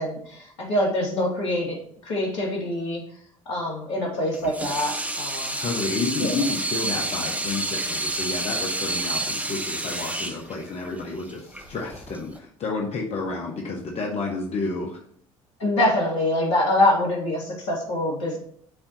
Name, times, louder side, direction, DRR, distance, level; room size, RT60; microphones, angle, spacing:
voice 1, 0.0-3.0 3.5-5.6 6.2-6.4 15.6-18.4, left 1 dB, 70° left, -2 dB, 2.6 m, -25 dB
Water tap faucet / Sink (filling or washing), 4.3-12.4, right 2 dB, 10° right, 1.1 m, -29 dB
voice 2, 5.5-15.0, left 3 dB, 40° left, 0 dB, 1.4 m, -30 dB
11.5 x 4.3 x 3.0 m, 0.63 s
figure-of-eight pair, 55°, 17 cm